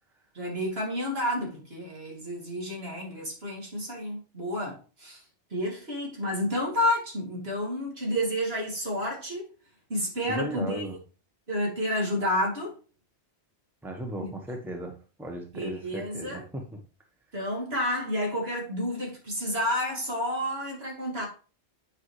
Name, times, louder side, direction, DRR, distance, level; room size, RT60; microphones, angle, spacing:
voice 1, 0.3-5.2 5.5-9.5 9.9-10.8 11.5-12.8 14.2-14.3 15.5-16.4 17.3-21.3, left 1 dB, 65° right, -2 dB, 2.9 m, -30 dB
voice 2, 10.3-11.0 13.8-16.6, right 1 dB, ahead, 3 dB, 0.9 m, -36 dB
8.7 x 5.4 x 3.2 m, 0.35 s
omnidirectional pair, 1.1 m